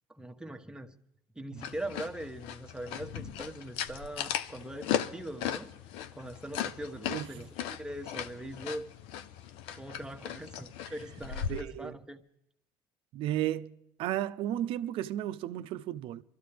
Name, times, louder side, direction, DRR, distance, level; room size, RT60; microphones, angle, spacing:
voice 1, 0.1-1.0 1.3-5.7 6.1-8.9 9.7-12.2, right 1 dB, 10° right, 1.1 m, -41 dB
sound 1, 1.6-11.6, left 10 dB, 80° left, 0.6 m, -37 dB
voice 2, 7.1-7.5 11.5-11.9 13.1-13.7 14.0-16.2, right 12 dB, 70° right, 0.6 m, -34 dB
24.0 x 13.0 x 3.4 m
supercardioid pair, 90°, 9 cm